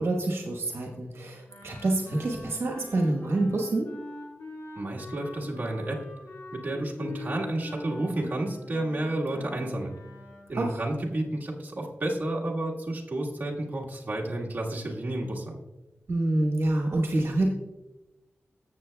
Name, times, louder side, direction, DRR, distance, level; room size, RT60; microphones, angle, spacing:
voice 1, 0.0-3.9 10.5-10.8 16.1-17.5, right 2 dB, 75° right, 1 dB, 1.2 m, -27 dB
Wind instrument woodwind instrument, 1.5-10.5, left 2 dB, 65° left, 2.1 m, -44 dB
voice 2, 4.8-6.0 6.5-9.9 10.5-15.6, right 1 dB, 45° right, -2 dB, 1.6 m, -31 dB
13.5 x 7.4 x 2.3 m, 1.0 s
wide cardioid pair, 100°, 4 cm